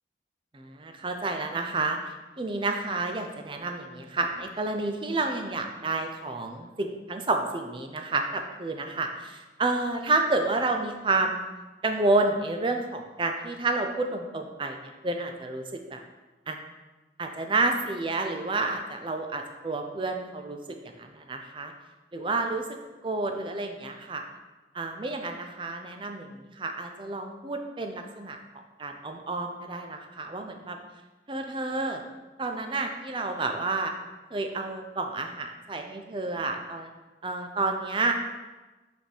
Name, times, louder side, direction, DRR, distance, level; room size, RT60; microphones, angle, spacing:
voice 1, 0.5-11.4 11.8-16.0 16.5-16.6 17.2-20.6 21.0-21.7 22.1-22.7 23.0-24.2 24.7-28.4 28.8-30.8 31.3-32.0 32.4-33.9 34.3-36.9 37.2-38.1, right 3 dB, 30° right, 4 dB, 0.5 m, -30 dB
6.5 x 3.5 x 4.6 m, 1.2 s
head